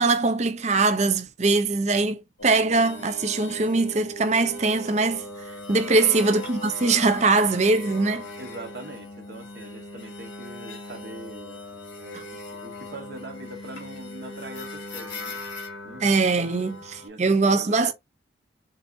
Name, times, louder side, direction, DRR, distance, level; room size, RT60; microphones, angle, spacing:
voice 1, 0.0-5.2 5.7-8.3 16.0-17.9, right 3 dB, 35° right, 0.6 m, -22 dB
sound 1, 2.4-17.1, left 1 dB, 90° left, 2.0 m, -39 dB
voice 2, 5.9-6.2 8.4-11.6 12.0-15.4 15.8-16.2 16.6-16.7 17.0-17.9, right 1 dB, 55° right, 1.2 m, -42 dB
3.9 x 3.9 x 2.5 m
head